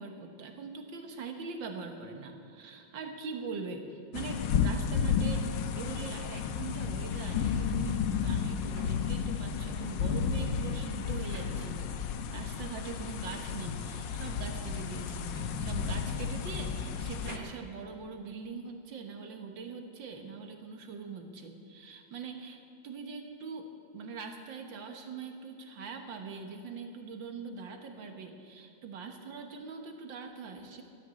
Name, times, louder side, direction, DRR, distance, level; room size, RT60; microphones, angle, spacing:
voice 1, 0.0-22.6 22.8-23.7 23.9-30.8, right 5 dB, 75° right, 4 dB, 1.9 m, -42 dB
sound 1, 4.1-17.4, left 6 dB, 75° left, 1.4 m, -32 dB
sound 2, 8.7-12.3 12.6-18.8, right 1 dB, 50° right, 2.2 m, -53 dB
13.0 x 9.4 x 8.7 m, 2.5 s
omnidirectional pair, 2.1 m